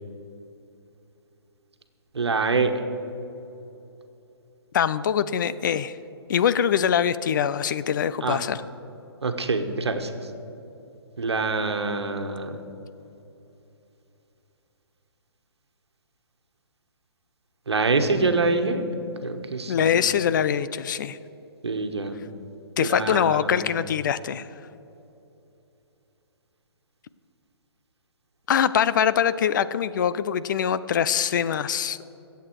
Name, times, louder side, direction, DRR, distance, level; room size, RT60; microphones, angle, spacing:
voice 1, 2.1-2.7 8.2-8.4 9.2-10.1 11.2-12.6 17.7-18.8 19.2-19.9 21.6-22.2 22.8-23.7, right 3 dB, 75° right, 6 dB, 1.5 m, -25 dB
voice 2, 4.7-6.0 6.3-8.6 19.7-21.2 22.8-24.5 28.5-32.0, left 8 dB, 45° left, 15 dB, 0.5 m, -23 dB
23.0 x 8.1 x 4.8 m, 2.8 s
figure-of-eight pair, 135°, 14 cm